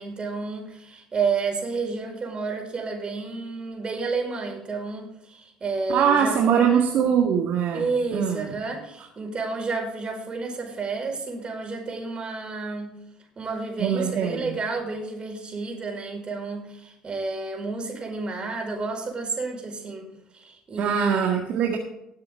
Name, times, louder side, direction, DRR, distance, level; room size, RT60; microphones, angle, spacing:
voice 1, 0.0-6.8 7.7-12.9 13.4-20.1 20.3-21.1, right 4 dB, 30° right, 2 dB, 5.1 m, -30 dB
voice 2, 5.9-7.9 8.1-8.5 13.8-14.5 20.8-21.8, right 8 dB, 55° right, 2 dB, 1.7 m, -22 dB
19.5 x 7.6 x 3.6 m, 0.84 s
hypercardioid pair, 60°, 3 cm